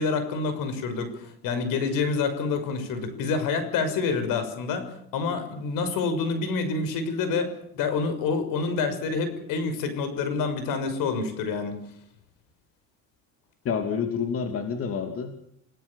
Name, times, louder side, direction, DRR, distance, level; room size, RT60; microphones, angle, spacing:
voice 1, 0.0-11.8, left 4 dB, 75° left, 9 dB, 6.4 m, -27 dB
voice 2, 13.6-15.3, left 6 dB, 40° left, 6 dB, 3.0 m, -28 dB
29.0 x 18.0 x 7.2 m, 0.71 s
cardioid pair, 135°, 33 cm